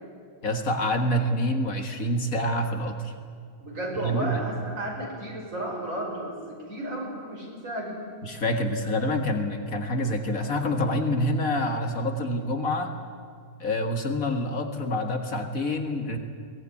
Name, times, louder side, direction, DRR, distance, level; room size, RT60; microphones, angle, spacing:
voice 1, 0.4-3.1 4.0-4.4 8.2-12.9 13.6-16.2, left 1 dB, 55° left, 5 dB, 2.2 m, -27 dB
voice 2, 3.6-8.0, right 1 dB, 50° right, -1 dB, 5.7 m, -33 dB
22.5 x 19.0 x 9.8 m, 2.1 s
omnidirectional pair, 1.7 m